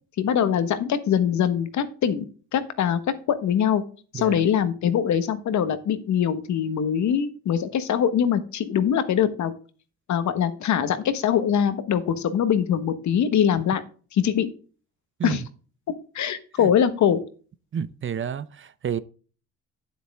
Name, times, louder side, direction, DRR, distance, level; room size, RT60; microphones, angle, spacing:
voice 1, 0.2-2.2 2.5-3.0 3.3-3.8 4.1-9.5 10.1-13.8 14.1-14.5 15.2-15.4 16.1-17.2, left 8 dB, 70° left, 1.4 m, -23 dB
voice 2, 17.7-19.0, right 8 dB, 40° right, 0.7 m, -30 dB
9.5 x 8.1 x 3.6 m
cardioid pair, 90°, 30 cm